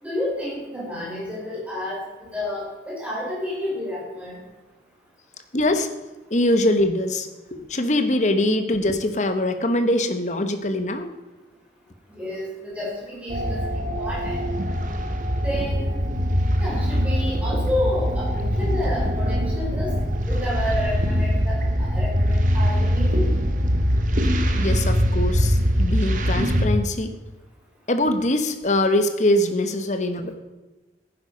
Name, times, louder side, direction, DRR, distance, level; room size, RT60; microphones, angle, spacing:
voice 1, 0.0-4.4 12.2-14.4 15.4-16.0 16.6-19.9 20.3-23.3, left 1 dB, 5° right, -6 dB, 4.8 m, -30 dB
voice 2, 5.5-5.9 6.3-11.1 15.0-15.1 24.6-27.2 27.9-30.3, left 1 dB, 40° left, 9 dB, 1.0 m, -23 dB
sound 1, 13.3-26.7, equal, 45° right, 1.2 m, -22 dB
11.0 x 9.8 x 5.3 m, 1.1 s
head